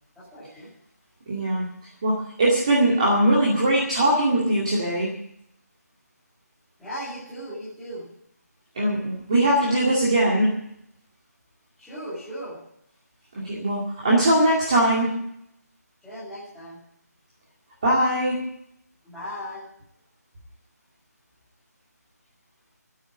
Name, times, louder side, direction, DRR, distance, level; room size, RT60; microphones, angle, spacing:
voice 1, 0.2-0.7 6.8-8.1 11.8-12.6 16.0-16.8 19.0-19.6, equal, ahead, -13 dB, 2.4 m, -37 dB
voice 2, 1.3-1.7 2.0-5.1 8.7-10.5 13.4-15.1 17.8-18.4, right 1 dB, 20° right, -4 dB, 2.3 m, -21 dB
14.0 x 8.6 x 9.7 m, 0.73 s
figure-of-eight pair, 180°, 9 cm